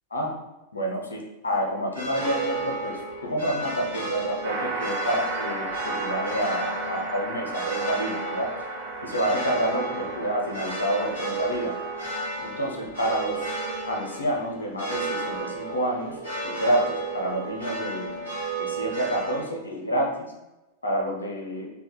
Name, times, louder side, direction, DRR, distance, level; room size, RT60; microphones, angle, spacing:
voice 1, 0.7-8.5 9.0-11.8 12.4-13.5 13.9-16.2 16.4-18.2 18.6-20.3 20.8-21.7, right 1 dB, 75° left, 0 dB, 0.5 m, -28 dB
sound 1, 1.9-19.4, right 2 dB, 90° right, 1.3 m, -33 dB
sound 2, 4.4-12.3, right 3 dB, 50° right, 0.9 m, -35 dB
3.4 x 2.2 x 2.3 m, 1.0 s
figure-of-eight pair, 90°, 0 cm